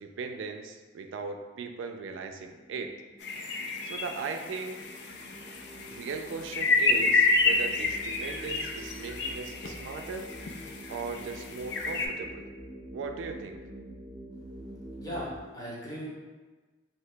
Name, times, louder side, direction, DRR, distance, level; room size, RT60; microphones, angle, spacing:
voice 1, 0.0-3.0 3.8-4.8 5.8-10.3 10.9-12.5 12.9-13.6, right 4 dB, 85° right, 5 dB, 0.3 m, -38 dB
sound 1, 2.0-15.4, right 1 dB, 25° right, 0.5 m, -47 dB
sound 2, 3.2-12.1, left 3 dB, 60° left, 0.3 m, -29 dB
voice 2, 14.5-16.1, equal, 20° left, -6 dB, 0.7 m, -39 dB
2.8 x 2.7 x 3.2 m, 1.3 s
head